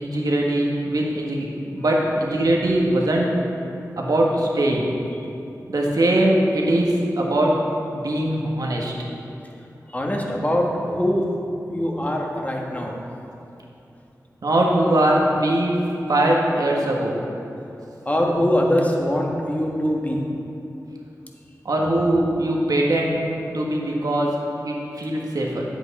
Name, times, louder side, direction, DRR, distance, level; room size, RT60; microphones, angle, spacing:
voice 1, 0.0-3.3 4.0-4.9 5.7-7.6 7.9-8.9 14.4-15.8 16.1-17.2 21.6-23.2 23.5-24.4 24.6-25.6, right 1 dB, 70° right, -2 dB, 1.5 m, -21 dB
voice 2, 9.9-11.3 11.7-13.0 18.0-20.2, equal, 25° left, 0 dB, 1.5 m, -22 dB
9.5 x 8.1 x 4.2 m, 2.8 s
cardioid pair, 45°, 7 cm